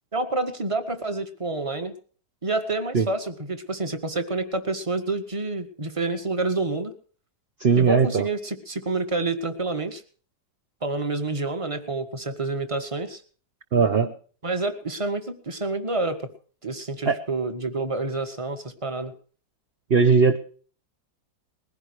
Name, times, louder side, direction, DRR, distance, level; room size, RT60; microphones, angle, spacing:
voice 1, 0.1-1.9 2.4-6.9 7.8-10.0 10.8-13.2 14.4-16.2 16.6-19.1, right 3 dB, 20° right, 8 dB, 1.6 m, -28 dB
voice 2, 7.6-8.3 13.7-14.1 17.1-17.2 19.9-20.4, right 5 dB, 40° right, 6 dB, 1.1 m, -18 dB
21.0 x 16.5 x 3.2 m, 0.42 s
omnidirectional pair, 1.9 m